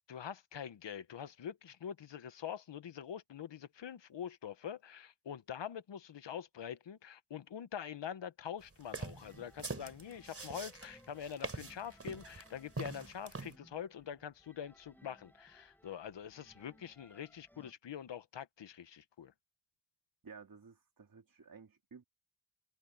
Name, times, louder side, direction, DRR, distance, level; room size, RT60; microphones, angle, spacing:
voice 1, 0.1-19.3, left 8 dB, 80° left, 1.2 m, -45 dB
sound 1, 8.8-13.6, right 3 dB, 30° right, 3.8 m, -43 dB
sound 2, 9.2-17.7, equal, 5° left, 4.2 m, -64 dB
voice 2, 20.2-22.0, right 5 dB, 50° right, 3.5 m, -54 dB
wide cardioid pair, 80°, 43 cm